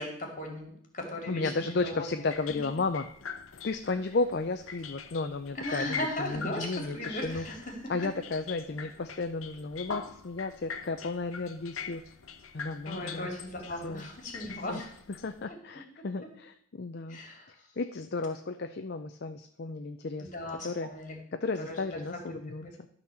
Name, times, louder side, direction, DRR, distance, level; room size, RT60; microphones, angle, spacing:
voice 1, 0.0-2.1 5.5-7.9 12.9-14.9 15.5-15.6 17.1-17.5 20.2-21.2 21.6-22.2 22.6-22.7, left 1 dB, 35° left, 2 dB, 2.4 m, -37 dB
voice 2, 1.3-3.0 3.6-7.5 7.9-12.0 12.5-13.3 13.8-14.1 14.7-14.8 15.2-17.2 17.8-20.3 20.6-20.9 21.3-22.9, left 3 dB, 55° left, 8 dB, 0.5 m, -33 dB
sound 1, 2.2-15.4, left 6 dB, 80° left, 0.8 m, -44 dB
12.0 x 4.1 x 6.9 m, 0.67 s
head